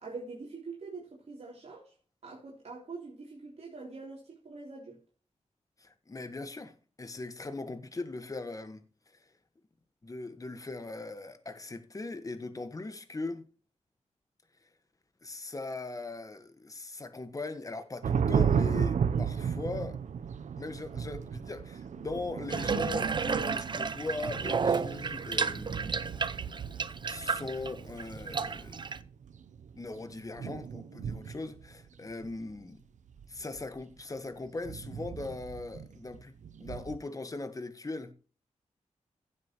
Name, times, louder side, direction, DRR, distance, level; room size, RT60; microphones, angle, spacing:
voice 1, 0.0-1.9 2.2-5.0, right 4 dB, 60° right, 3.4 m, -44 dB
voice 2, 5.8-8.8 10.0-13.4 15.2-20.0 20.6-26.0 27.1-28.8 29.7-32.8 33.3-36.3 36.6-38.1, left 3 dB, 30° left, 1.4 m, -40 dB
sound 1, 18.0-31.7 32.1-32.5 33.1-33.8 34.4-37.0, right 7 dB, 85° right, 0.7 m, -34 dB
Water tap faucet / Bathtub (filling or washing), 22.5-29.0, right 5 dB, 40° right, 0.6 m, -32 dB
16.0 x 7.5 x 3.0 m
wide cardioid pair, 115°, 12 cm